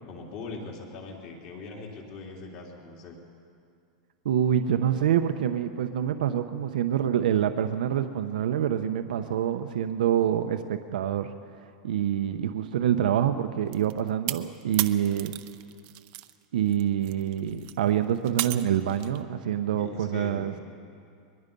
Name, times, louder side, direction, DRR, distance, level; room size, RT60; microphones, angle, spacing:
voice 1, 0.0-3.2 19.7-20.5, left 3 dB, 40° left, -1 dB, 3.4 m, -40 dB
voice 2, 4.2-11.3 11.8-15.3 16.5-20.6, right 10 dB, 90° right, 8 dB, 0.9 m, -26 dB
sound 1, 13.7-16.3 16.7-19.2, right 18 dB, 35° right, 0.6 m, -34 dB
22.0 x 21.5 x 5.4 m, 2.4 s
supercardioid pair, 175°, 4 cm